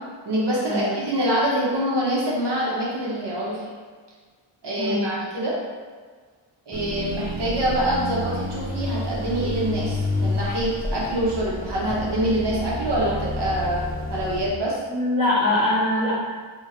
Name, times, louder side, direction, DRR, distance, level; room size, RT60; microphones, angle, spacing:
voice 1, 0.2-3.6 4.6-5.6 6.7-14.8, equal, 55° right, -6 dB, 1.1 m, -25 dB
voice 2, 4.8-5.2 14.9-16.1, left 1 dB, 25° left, -15 dB, 1.4 m, -22 dB
sound 1, 6.7-14.5, left 1 dB, 25° right, 0.9 m, -29 dB
2.9 x 2.8 x 4.3 m, 1.5 s
wide cardioid pair, 140°, 50 cm